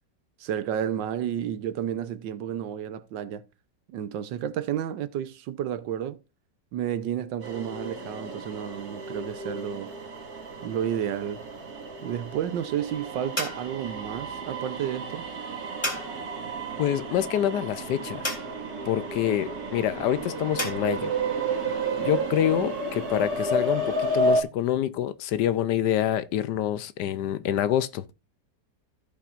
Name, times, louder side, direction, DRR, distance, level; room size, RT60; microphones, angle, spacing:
voice 1, 0.4-3.4 3.9-6.2 6.7-9.9 10.6-11.4 12.0-15.3, right 9 dB, 80° right, 1.4 m, -31 dB
sound 1, 7.4-24.4, right 2 dB, 55° right, 2.5 m, -32 dB
sound 2, 11.3-20.7, left 1 dB, 15° left, 2.1 m, -38 dB
voice 2, 16.8-18.3 18.9-21.1 22.0-28.1, left 11 dB, 75° left, 1.1 m, -26 dB
15.5 x 5.7 x 2.5 m
omnidirectional pair, 2.0 m